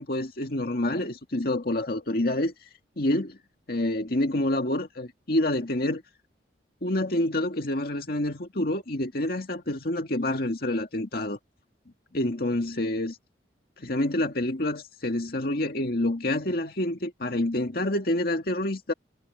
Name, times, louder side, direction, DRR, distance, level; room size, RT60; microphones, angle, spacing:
voice 1, 0.0-2.5 3.0-3.4 3.7-6.0 6.8-11.4 12.1-13.2 13.8-18.9, left 1 dB, 55° left, 2.0 m, -27 dB
head